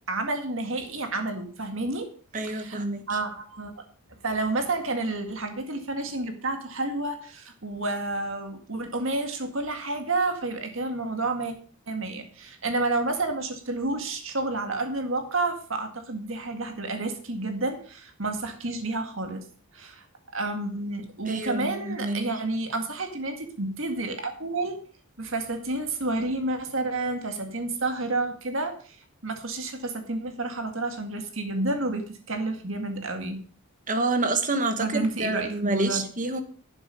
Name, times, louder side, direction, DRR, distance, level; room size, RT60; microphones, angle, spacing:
voice 1, 0.1-2.1 2.4-2.8 3.1-3.8 4.2-11.5 11.9-19.5 19.7-20.1 20.3-24.8 25.2-29.0 29.2-33.4 34.8-36.0, right 2 dB, 60° right, 1.9 m, -30 dB
voice 2, 2.3-3.1 21.3-22.3 33.9-36.4, right 2 dB, 35° right, 1.2 m, -28 dB
11.5 x 7.3 x 5.4 m
head